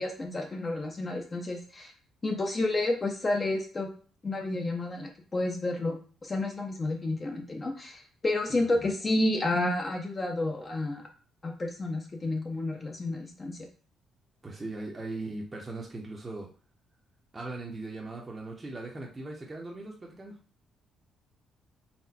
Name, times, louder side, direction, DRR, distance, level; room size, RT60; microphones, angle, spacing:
voice 1, 0.0-1.9 2.2-3.9 4.2-6.0 6.2-11.0 11.4-13.6, left 2 dB, 30° left, 1 dB, 0.8 m, -30 dB
voice 2, 8.6-8.9 14.4-16.5 17.3-20.3, right 2 dB, 25° right, -2 dB, 0.9 m, -39 dB
4.2 x 2.2 x 4.2 m, 0.41 s
cardioid pair, 90°, 0 cm